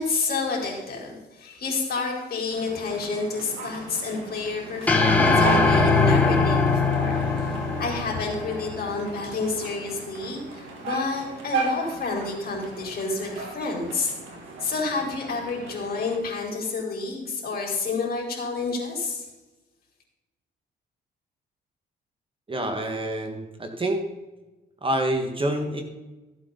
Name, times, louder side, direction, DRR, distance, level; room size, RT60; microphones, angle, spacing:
voice 1, 0.0-7.2 7.8-14.1 14.6-19.3, left 3 dB, 50° left, -1 dB, 3.9 m, -29 dB
sound 1, 2.5-16.2, right 3 dB, 75° right, 2.7 m, -36 dB
sound 2, 4.9-9.3, left 3 dB, 10° left, 1.8 m, -21 dB
voice 2, 22.5-24.0 24.8-25.8, right 1 dB, 25° right, 4 dB, 1.7 m, -27 dB
14.5 x 8.1 x 4.0 m, 1.1 s
cardioid pair, 90°, 20 cm